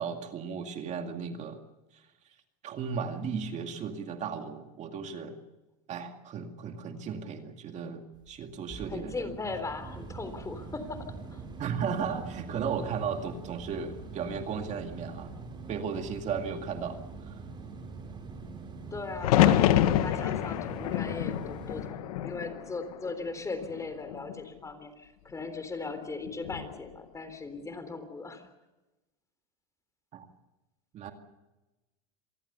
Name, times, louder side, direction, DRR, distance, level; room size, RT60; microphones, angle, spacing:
voice 1, 0.0-1.6 1.9-2.1 2.6-5.4 5.9-9.3 11.6-15.3 15.7-17.4 19.3-19.7 30.1-30.3 30.9-31.1, right 6 dB, 40° right, 5 dB, 2.3 m, -35 dB
sound 1, 8.1-21.9, right 4 dB, 25° right, 5.4 m, -43 dB
voice 2, 8.9-11.4 18.9-28.5, left 3 dB, 15° left, 9 dB, 3.7 m, -38 dB
sound 2, 19.2-23.3 23.6-24.4 26.3-26.7, left 12 dB, 85° left, 1.5 m, -27 dB
27.0 x 20.0 x 6.9 m, 1.1 s
supercardioid pair, 120°, 18 cm